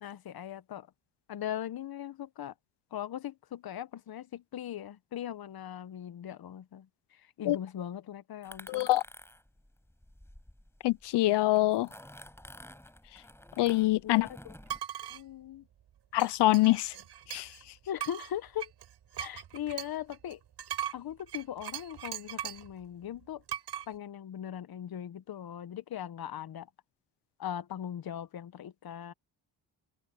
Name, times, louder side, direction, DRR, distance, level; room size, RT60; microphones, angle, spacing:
voice 1, 0.0-0.9 1.3-2.5 2.9-8.9 14.0-14.5 15.1-15.7 17.9-18.7 19.2-20.4 20.9-23.4 23.9-26.7 27.4-29.1, left 10 dB, 60° left, 1.2 m, -39 dB
sound 1, 8.4-11.1 11.6-14.8, left 1 dB, 5° left, 6.8 m, -51 dB
voice 2, 8.7-9.0 10.8-11.9 13.6-14.3 16.1-16.9 17.3-17.5, left 17 dB, 75° left, 0.7 m, -25 dB
sound 2, 14.7-15.2 16.2-17.6 18.0-22.7 23.5-23.9, right 10 dB, 75° right, 6.1 m, -39 dB
open air
supercardioid pair, 60°, 41 cm